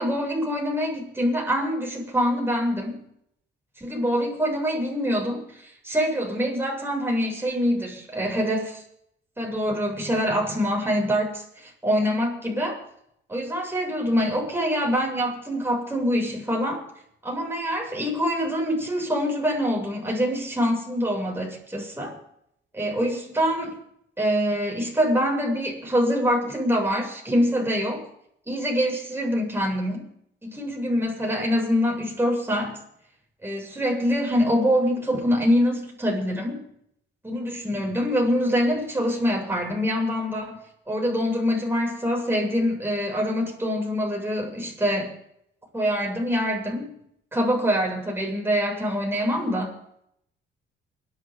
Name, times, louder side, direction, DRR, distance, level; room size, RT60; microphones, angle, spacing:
voice 1, 0.0-3.0 3.8-8.8 9.4-12.8 13.3-16.8 17.2-22.2 22.7-23.8 24.2-28.1 28.5-30.1 30.4-32.8 33.4-36.6 37.2-40.6 40.9-45.1 45.7-46.9 47.3-49.8, equal, 10° right, -1 dB, 7.3 m, -25 dB
28.5 x 12.0 x 4.0 m, 0.73 s
cardioid pair, 90°, 20 cm